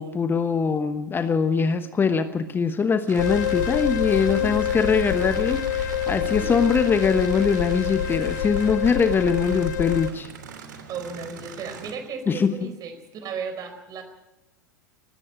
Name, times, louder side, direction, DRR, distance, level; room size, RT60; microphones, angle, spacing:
voice 1, 0.0-10.3 12.3-12.7, left 5 dB, 20° left, 10 dB, 1.1 m, -22 dB
sound 1, 3.1-11.9, right 7 dB, 70° right, 3.0 m, -40 dB
sound 2, 3.2-10.1, left 10 dB, 65° left, 1.1 m, -26 dB
voice 2, 4.3-4.8 6.2-6.7 10.9-14.0, right 5 dB, 35° right, 8 dB, 4.5 m, -36 dB
19.0 x 15.5 x 8.9 m, 0.93 s
figure-of-eight pair, 85°, 10 cm